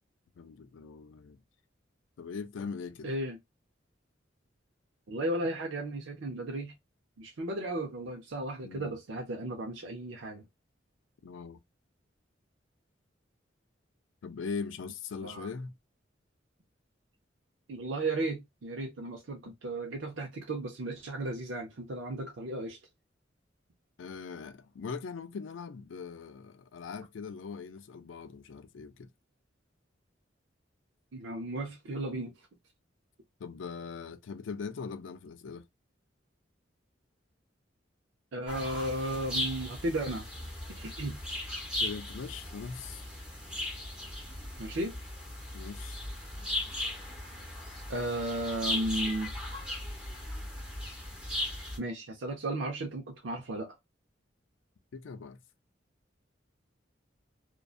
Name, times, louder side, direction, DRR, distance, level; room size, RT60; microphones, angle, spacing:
voice 1, 0.4-1.4 2.2-3.1 8.6-8.9 11.2-11.6 14.2-15.7 24.0-29.1 33.4-35.6 41.8-43.1 45.5-46.0 54.9-55.4, left 5 dB, 80° left, 0.4 m, -41 dB
voice 2, 3.0-3.4 5.1-6.7 7.2-10.4 15.2-15.5 17.7-22.8 31.1-32.3 38.3-40.3 40.7-41.2 44.6-45.0 47.9-49.3 51.6-53.8, right 1 dB, 80° right, 0.6 m, -35 dB
sound 1, 38.5-51.8, left 1 dB, 5° right, 0.9 m, -37 dB
2.5 x 2.2 x 2.3 m
head